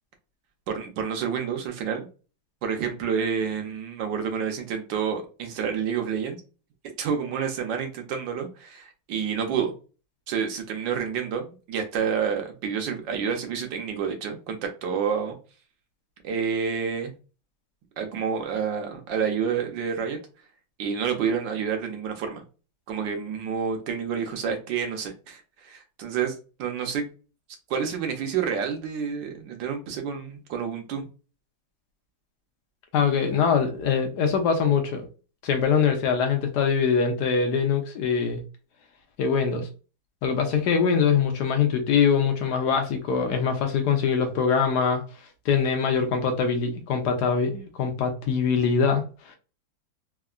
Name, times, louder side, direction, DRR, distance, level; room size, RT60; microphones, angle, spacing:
voice 1, 0.7-2.1 2.6-6.4 7.0-9.7 10.3-15.4 16.2-17.1 18.0-20.2 20.8-22.4 22.9-27.1 27.7-31.1, right 7 dB, 70° right, 1.3 m, -29 dB
voice 2, 32.9-35.1 35.4-38.4 39.2-39.7 40.2-45.0 45.5-49.4, left 6 dB, 70° left, 1.0 m, -23 dB
3.6 x 2.1 x 2.4 m
omnidirectional pair, 2.2 m